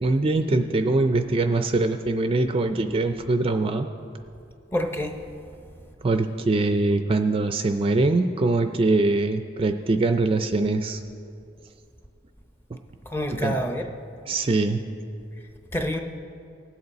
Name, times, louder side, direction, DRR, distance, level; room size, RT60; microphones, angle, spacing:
voice 1, 0.0-3.9 6.0-11.0 13.4-13.6 14.3-14.8, right 2 dB, 30° right, 7 dB, 0.4 m, -23 dB
voice 2, 4.7-5.2 13.1-13.9 15.7-16.0, equal, 10° left, 4 dB, 0.7 m, -27 dB
19.0 x 7.9 x 4.1 m, 2.5 s
head